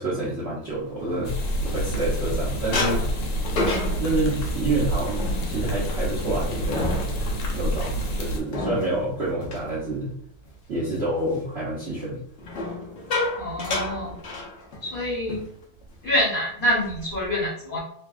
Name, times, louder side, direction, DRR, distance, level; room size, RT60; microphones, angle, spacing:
voice 1, 0.0-1.3 1.7-3.0 4.0-7.0 7.5-10.1 10.7-12.2, right 2 dB, 65° right, -8 dB, 0.6 m, -28 dB
sound 1, 0.8-2.3 2.7-10.5 10.9-11.2 12.4-15.0 15.3-15.5 15.8-16.1 16.6-17.2, left 2 dB, 85° left, 0.6 m, -31 dB
sound 2, 1.2-8.4, right 1 dB, 70° left, 1.3 m, -28 dB
voice 2, 13.4-14.1 14.8-15.4 16.0-17.8, left 1 dB, 40° left, -7 dB, 0.8 m, -26 dB
3.3 x 2.2 x 2.4 m, 0.65 s
omnidirectional pair, 2.2 m